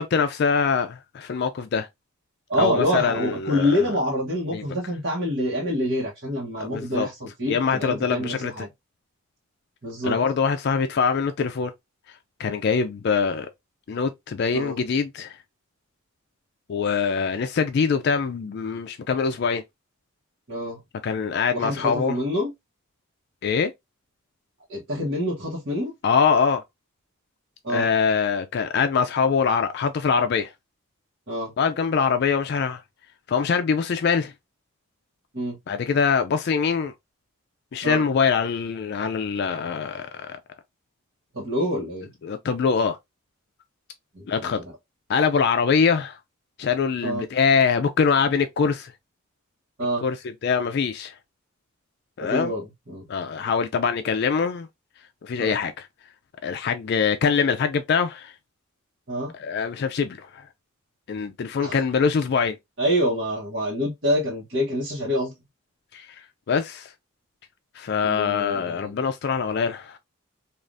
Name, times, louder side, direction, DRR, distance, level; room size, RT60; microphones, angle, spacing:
voice 1, 0.0-1.9 2.6-3.9 4.5-4.6 6.6-7.1 7.5-8.7 10.0-11.7 12.4-13.5 13.9-15.4 16.7-19.6 21.0-22.2 23.4-23.7 26.0-26.6 27.7-30.5 31.6-32.8 33.3-34.3 35.7-36.9 37.7-40.4 42.2-43.0 44.3-44.6 45.1-46.2 46.6-48.9 50.0-51.1 52.2-52.5 53.1-54.7 55.2-55.9 56.4-58.3 59.3-60.4 61.1-62.6 65.9-66.2 66.5-66.9 67.8-70.0, left 6 dB, 50° left, 0.3 m, -23 dB
voice 2, 2.5-8.7 9.8-10.2 14.5-14.8 20.5-20.8 21.5-22.5 24.7-25.9 27.6-27.9 31.3-31.5 35.3-35.6 37.8-38.0 41.3-42.1 44.1-44.5 47.0-47.2 49.8-50.0 52.2-53.0 55.4-55.5 59.1-59.3 61.6-61.8 62.8-65.3 68.0-69.0, equal, 50° right, 1.1 m, -26 dB
3.3 x 2.4 x 2.5 m
head